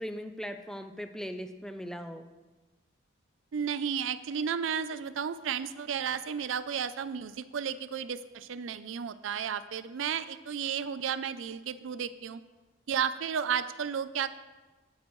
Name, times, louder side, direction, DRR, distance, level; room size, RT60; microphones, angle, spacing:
voice 1, 0.0-2.2, equal, 5° left, 7 dB, 0.5 m, -39 dB
voice 2, 3.5-12.4 12.9-14.3, right 7 dB, 80° right, 14 dB, 0.4 m, -33 dB
16.5 x 8.7 x 3.1 m, 1.2 s
head